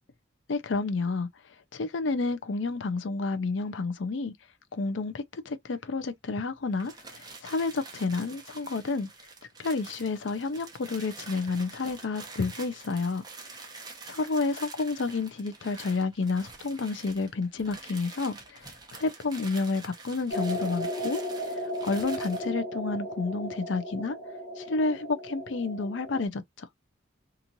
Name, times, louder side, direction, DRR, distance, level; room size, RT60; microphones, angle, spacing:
voice 1, 0.5-1.3 1.7-4.3 4.7-9.1 9.6-13.2 14.1-21.2 21.8-24.2 24.6-26.7, left 3 dB, 70° left, 0.5 m, -30 dB
sound 1, 6.7-22.5, right 3 dB, 20° right, 0.7 m, -47 dB
sound 2, 20.3-26.3, equal, 35° left, 1.1 m, -35 dB
3.0 x 2.4 x 2.6 m
head